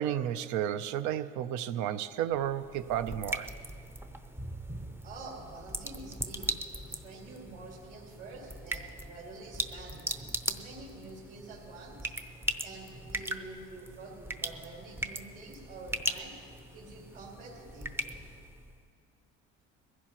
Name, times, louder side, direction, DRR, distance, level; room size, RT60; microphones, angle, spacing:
voice 1, 0.0-3.5, right 10 dB, 70° right, 13 dB, 0.7 m, -32 dB
sound 1, 2.3-18.8, right 1 dB, 5° right, 0.6 m, -39 dB
voice 2, 5.0-6.5 6.9-12.1 12.6-16.3 16.7-17.9, right 3 dB, 50° right, -2 dB, 4.3 m, -47 dB
22.0 x 15.5 x 3.0 m, 2.4 s
cardioid pair, 115°, 31 cm